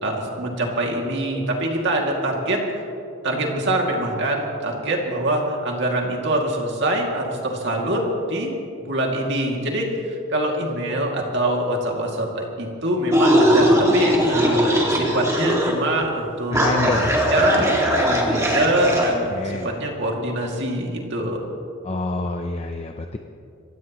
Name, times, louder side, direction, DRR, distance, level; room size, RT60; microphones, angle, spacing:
voice 1, 0.0-2.6 3.2-8.5 8.8-21.5, right 1 dB, 55° right, 0 dB, 2.4 m, -24 dB
sound 1, 13.1-15.7 16.0-16.1 16.5-19.1, equal, 15° right, 2.1 m, -19 dB
voice 2, 16.5-17.1 19.3-19.7 21.8-23.2, left 2 dB, 30° left, 5 dB, 0.6 m, -27 dB
25.5 x 16.0 x 3.1 m, 2.6 s
head